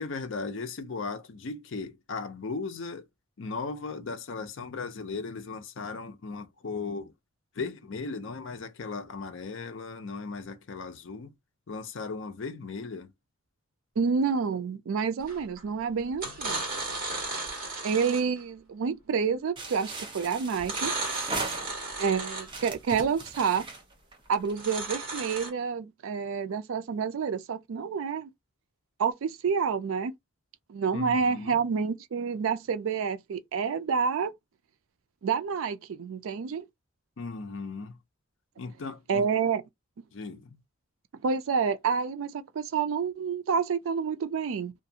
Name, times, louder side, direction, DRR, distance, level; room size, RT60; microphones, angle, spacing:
voice 1, 0.0-3.0 3.4-7.1 7.6-11.3 11.7-13.1 30.9-31.6 37.2-37.9 38.6-39.3 40.1-40.6, left 4 dB, 60° left, 0.5 m, -37 dB
voice 2, 14.0-16.6 17.8-20.9 22.0-23.7 24.3-28.3 29.0-30.1 30.7-34.3 35.2-36.7 39.1-39.6 41.2-44.7, right 6 dB, 70° right, 0.4 m, -28 dB
sound 1, 15.3-15.6 16.1-18.4 20.6-22.6 24.5-25.5, right 3 dB, 45° right, 1.4 m, -34 dB
sound 2, 19.6-22.0 22.4-24.7, right 3 dB, 25° right, 0.6 m, -38 dB
2.6 x 2.3 x 2.7 m
head